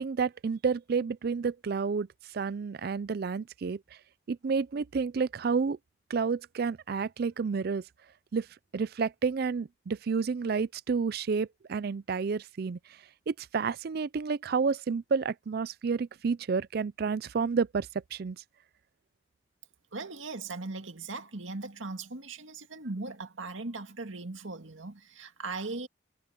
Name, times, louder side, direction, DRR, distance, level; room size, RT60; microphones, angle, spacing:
voice 1, 0.0-2.1 2.3-3.8 4.3-5.8 6.1-7.8 8.3-8.5 8.7-12.8 13.3-18.4, right 5 dB, 50° right, 0.4 m, -30 dB
voice 2, 19.9-25.9, right 3 dB, 80° right, 2.1 m, -39 dB
head